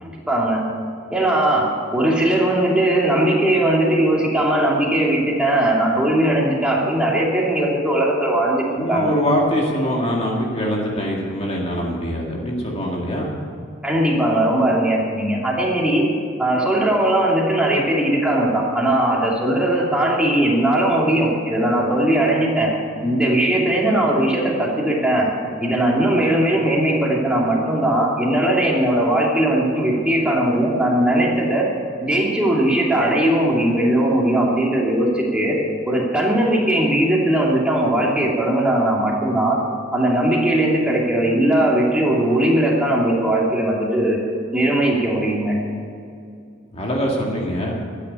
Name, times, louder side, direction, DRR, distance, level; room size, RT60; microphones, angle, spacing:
voice 1, 0.0-0.6 1.1-9.1 13.8-16.0 16.4-22.7 23.0-25.3 25.6-31.7 32.0-35.6 35.9-39.6 39.9-44.2 44.5-45.5, right 1 dB, 5° right, -4 dB, 2.7 m, -19 dB
voice 2, 8.8-13.3 46.7-47.7, equal, 30° left, -2 dB, 1.9 m, -23 dB
13.0 x 9.9 x 8.3 m, 2.4 s
head